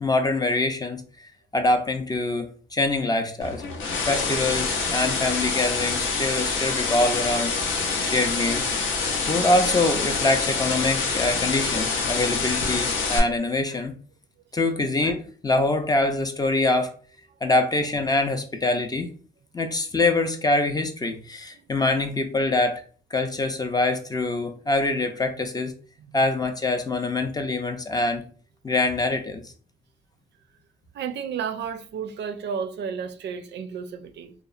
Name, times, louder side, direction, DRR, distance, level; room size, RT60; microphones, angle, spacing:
voice 1, 0.0-1.0 1.5-2.5 2.7-3.6 4.1-7.5 8.0-8.7 9.3-13.9 14.5-16.9 17.4-19.1 19.5-22.8 23.1-25.7 26.1-28.2 28.6-29.5, left 2 dB, 20° left, 0.4 m, -24 dB
sound 1, 3.4-13.2, left 4 dB, 85° left, 0.6 m, -26 dB
voice 2, 30.9-34.3, right 7 dB, 60° right, 0.4 m, -32 dB
2.8 x 2.0 x 2.4 m
cardioid pair, 90°, 20 cm